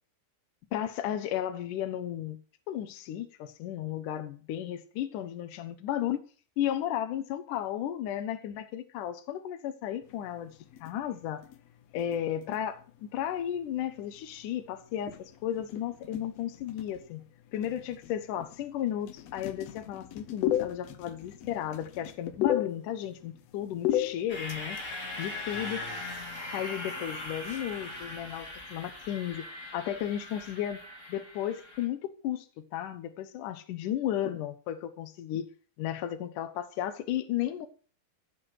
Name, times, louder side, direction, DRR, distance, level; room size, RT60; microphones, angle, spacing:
voice 1, 0.7-2.4 2.7-6.2 6.6-10.5 10.8-11.4 11.9-17.2 17.5-24.8 25.2-26.1 26.5-29.5 29.7-30.8 31.1-35.5 35.8-37.7, left 11 dB, 65° left, 2.3 m, -34 dB
sound 1, 10.0-28.3, left 12 dB, 85° left, 1.4 m, -38 dB
sound 2, 24.3-31.8, left 2 dB, 20° left, 3.0 m, -40 dB
15.0 x 8.1 x 6.6 m
omnidirectional pair, 4.4 m